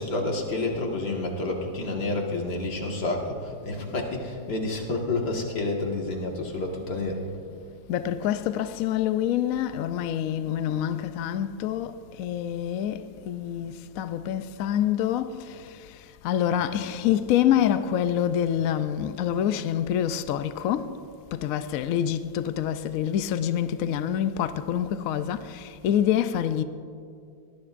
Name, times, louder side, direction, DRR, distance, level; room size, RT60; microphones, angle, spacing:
voice 1, 0.0-7.2, left 2 dB, 85° left, 2.3 m, -29 dB
voice 2, 7.9-21.0 21.3-26.6, left 10 dB, 70° left, 0.9 m, -26 dB
22.5 x 18.0 x 2.5 m
omnidirectional pair, 1.8 m